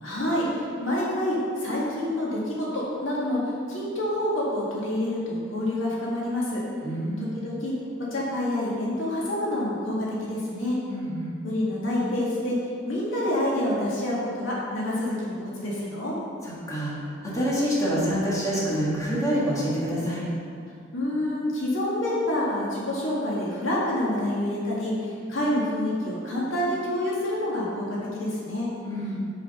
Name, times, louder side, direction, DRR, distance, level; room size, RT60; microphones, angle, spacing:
voice 1, 0.0-6.6 7.2-7.7 8.1-10.8 11.4-12.6 12.9-16.2 20.9-28.7, left 1 dB, 85° left, -6 dB, 1.9 m, -27 dB
voice 2, 6.8-7.3 10.9-11.4 16.4-20.2 28.9-29.2, equal, 15° left, -7 dB, 1.6 m, -27 dB
6.1 x 5.6 x 5.4 m, 2.3 s
head